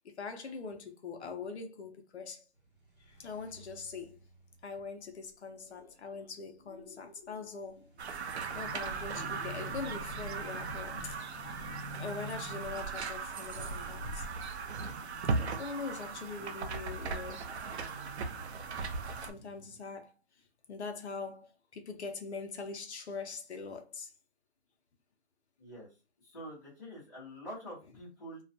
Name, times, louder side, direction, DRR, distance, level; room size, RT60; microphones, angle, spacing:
voice 1, 0.0-2.4 3.1-4.2 4.6-7.9 8.5-11.2 11.5-11.6 12.0-14.3 15.4-17.5 19.3-20.1 20.7-24.1, left 4 dB, 70° left, 0.7 m, -42 dB
sound 1, 2.6-19.8, right 2 dB, 50° right, 0.9 m, -56 dB
sound 2, 8.0-19.3, right 4 dB, 70° right, 0.5 m, -38 dB
sound 3, 8.3-14.1, equal, 50° left, 0.9 m, -47 dB
voice 2, 26.2-28.4, equal, 15° left, 0.8 m, -46 dB
2.3 x 2.2 x 2.6 m
hypercardioid pair, 180°, 34 cm